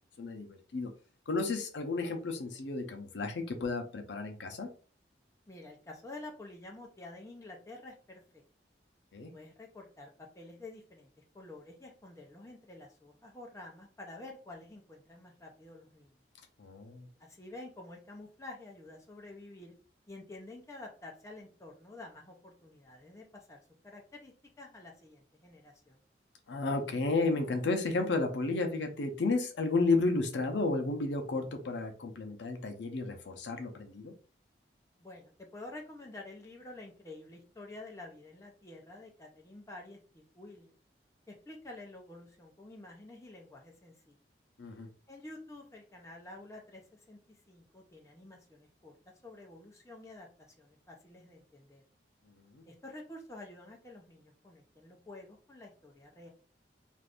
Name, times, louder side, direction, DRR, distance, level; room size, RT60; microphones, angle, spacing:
voice 1, 0.2-0.9 1.3-4.7 9.1-9.3 16.6-17.1 26.5-34.1 44.6-44.9 52.5-52.6, left 3 dB, 80° left, 5 dB, 0.6 m, -32 dB
voice 2, 5.5-8.2 9.3-10.1 10.3-11.1 11.3-16.2 17.2-19.7 20.1-26.0 35.0-40.8 41.3-44.2 45.1-46.8 47.1-47.2 47.5-48.9 49.2-51.8 52.7-56.3, left 2 dB, 15° left, 0 dB, 0.6 m, -49 dB
2.5 x 2.5 x 3.4 m, 0.39 s
head